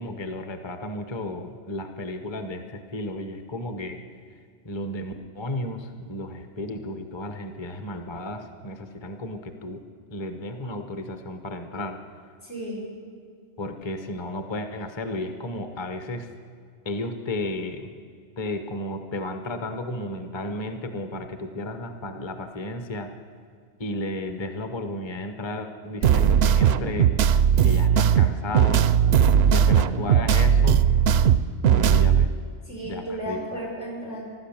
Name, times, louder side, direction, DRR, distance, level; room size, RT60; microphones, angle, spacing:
voice 1, 0.0-4.0 4.6-9.8 10.1-12.0 13.6-16.3 16.8-17.9 18.4-23.1 23.8-27.2 27.6-28.8 29.5-30.9 31.7-32.3 32.8-33.4, left 1 dB, 25° left, 7 dB, 0.9 m, -33 dB
voice 2, 12.4-12.8 32.7-34.2, right 1 dB, 85° left, -4 dB, 5.5 m, -33 dB
sound 1, 26.0-32.3, right 8 dB, 70° right, 0.8 m, -18 dB
15.0 x 12.0 x 7.3 m, 2.2 s
omnidirectional pair, 1.2 m